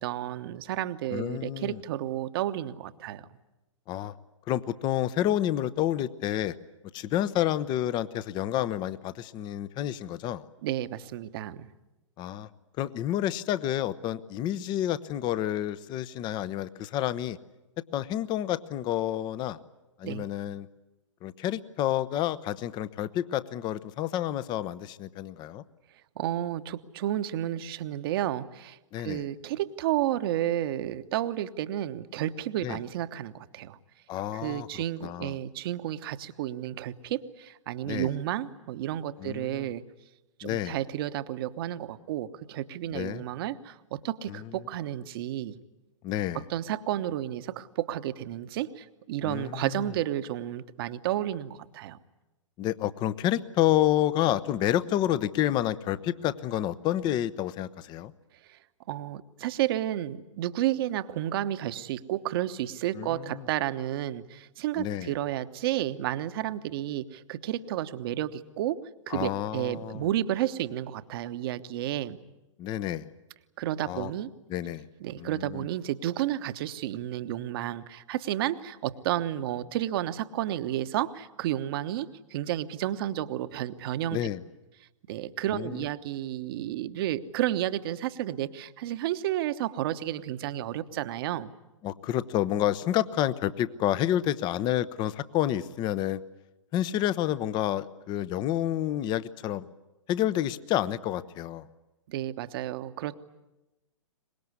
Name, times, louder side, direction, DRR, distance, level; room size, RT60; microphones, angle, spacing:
voice 1, 0.0-3.3 10.6-11.7 20.0-20.3 26.2-33.8 34.3-39.8 40.4-45.6 46.3-52.0 58.5-58.6 58.9-68.8 69.1-72.2 73.6-74.3 75.0-84.2 85.1-91.5 102.1-103.2, right 13 dB, 45° right, 12 dB, 1.1 m, -31 dB
voice 2, 1.1-1.8 3.9-4.1 4.5-6.5 6.9-10.5 12.2-12.5 12.8-17.4 17.9-19.6 20.0-20.7 21.2-25.6 28.9-29.2 32.6-32.8 34.1-35.4 37.8-38.1 39.2-39.7 40.4-40.8 42.9-43.2 44.3-44.4 46.0-46.4 49.2-49.9 52.6-58.1 62.9-63.4 64.8-65.1 69.1-70.1 72.6-73.1 73.9-74.1 74.5-74.8 75.2-75.7 84.1-84.4 85.5-85.9 91.8-96.2 96.7-99.7 100.1-101.7, left 12 dB, 25° left, 17 dB, 0.9 m, -29 dB
23.5 x 21.0 x 9.6 m, 1.0 s
figure-of-eight pair, 115°, 17 cm